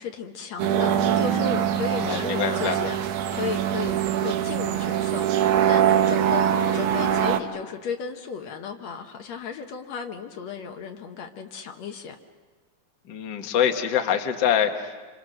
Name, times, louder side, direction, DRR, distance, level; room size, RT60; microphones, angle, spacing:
voice 1, 0.0-3.0 3.3-12.2, left 6 dB, 70° left, 5 dB, 2.2 m, -34 dB
sound 1, 0.6-7.4, right 10 dB, 90° right, 2.5 m, -23 dB
voice 2, 2.0-2.8 13.1-15.1, left 8 dB, 45° left, 4 dB, 1.6 m, -25 dB
27.0 x 26.5 x 6.4 m, 1.3 s
omnidirectional pair, 3.4 m